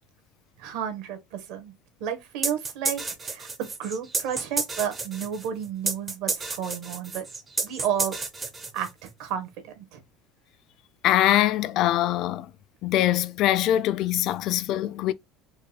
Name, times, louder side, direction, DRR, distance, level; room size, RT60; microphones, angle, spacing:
voice 1, 0.6-1.7 2.0-7.3 7.6-8.1 8.7-10.0, right 9 dB, 60° right, 1.2 m, -32 dB
sound 1, 2.4-9.1, right 4 dB, 15° right, 0.5 m, -31 dB
voice 2, 11.0-12.5 12.8-15.1, left 13 dB, 40° left, 0.3 m, -23 dB
4.4 x 2.3 x 3.3 m
cardioid pair, 175°, 0 cm